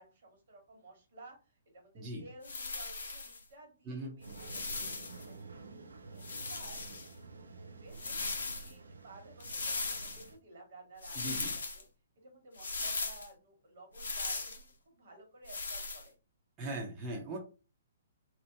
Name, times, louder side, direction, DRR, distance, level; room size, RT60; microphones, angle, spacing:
voice 1, 0.0-5.6 6.1-6.8 7.3-11.8 12.2-16.1, right 2 dB, 60° right, 2 dB, 1.6 m, -55 dB
sound 1, 2.4-3.4 4.2-5.2 6.2-7.1 7.9-8.7 9.4-10.3 11.0-11.8 12.6-13.3 13.9-14.6 15.5-16.1, left 3 dB, 70° left, 0.8 m, -38 dB
sound 2, 4.2-10.4, right 4 dB, 75° right, 0.5 m, -51 dB
voice 2, 11.1-11.6 16.6-17.4, right 1 dB, 25° right, -3 dB, 1.0 m, -39 dB
3.0 x 2.3 x 3.5 m, 0.33 s
figure-of-eight pair, 125°, 0 cm